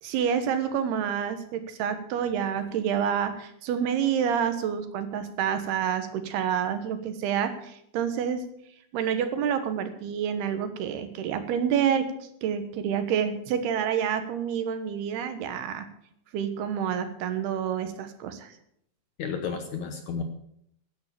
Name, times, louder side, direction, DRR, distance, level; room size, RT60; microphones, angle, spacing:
voice 1, 0.0-8.5 8.9-15.9 16.3-18.5, right 8 dB, 75° right, 9 dB, 3.1 m, -28 dB
voice 2, 19.2-20.2, left 6 dB, 70° left, 6 dB, 1.7 m, -32 dB
13.5 x 9.8 x 6.9 m, 0.73 s
omnidirectional pair, 4.8 m